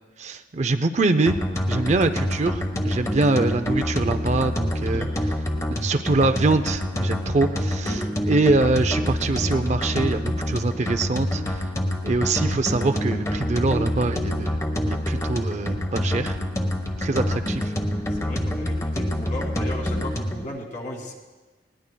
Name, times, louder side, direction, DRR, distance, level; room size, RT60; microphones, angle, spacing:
voice 1, 0.2-1.4 1.7-5.1 5.8-8.0 8.3-11.6 12.0-14.6 14.8-16.4 17.0-17.7, right 3 dB, 40° right, 9 dB, 0.5 m, -24 dB
sound 1, 1.3-20.4, equal, 15° left, 1.1 m, -26 dB
voice 2, 18.2-21.1, left 1 dB, 45° left, 0 dB, 2.2 m, -35 dB
20.5 x 18.5 x 2.3 m, 1.3 s
head